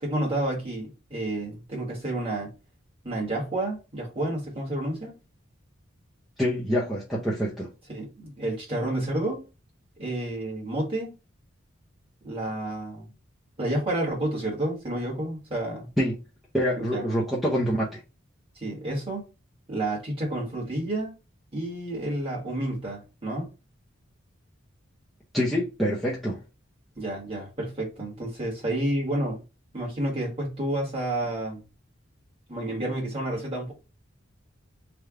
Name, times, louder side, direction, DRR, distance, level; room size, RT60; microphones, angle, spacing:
voice 1, 0.0-2.5 3.0-5.1 7.9-9.4 10.0-11.1 12.2-13.1 13.6-15.9 16.8-17.0 18.6-19.3 19.7-21.1 21.5-23.5 27.0-29.4 29.7-31.6 32.5-33.7, right 1 dB, 25° right, 1.5 m, -30 dB
voice 2, 6.4-7.7 16.0-16.1 16.5-18.0 25.3-26.4, equal, ahead, 0.6 m, -26 dB
3.3 x 2.3 x 3.6 m
head